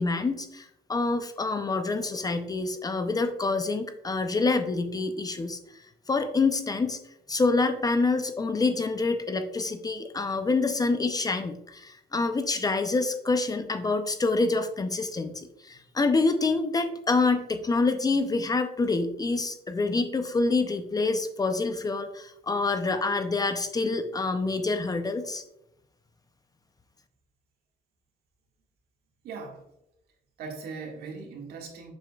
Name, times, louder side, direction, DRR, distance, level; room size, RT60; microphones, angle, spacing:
voice 1, 0.0-5.6 6.1-7.0 7.3-25.4, left 3 dB, 20° left, 8 dB, 0.6 m, -27 dB
voice 2, 29.2-29.6 30.4-31.9, right 4 dB, 70° right, 0 dB, 1.9 m, -39 dB
7.6 x 7.0 x 2.4 m, 0.84 s
cardioid pair, 110°, 17 cm